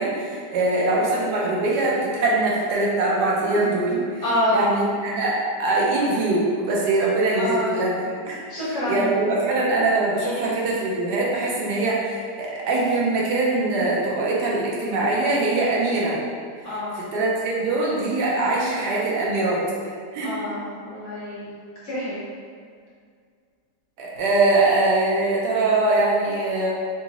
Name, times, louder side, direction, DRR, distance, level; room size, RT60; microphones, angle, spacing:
voice 1, 0.0-4.2 4.5-8.0 8.3-16.2 16.7-19.6 20.1-20.3 24.0-26.7, right 2 dB, 80° right, -5 dB, 1.3 m, -22 dB
voice 2, 4.2-4.6 7.4-7.8 8.5-9.1 10.2-10.4 16.6-17.0 20.2-21.5 21.8-22.2, left 1 dB, 55° left, -9 dB, 1.0 m, -27 dB
3.8 x 2.4 x 2.9 m, 2.1 s
omnidirectional pair, 1.8 m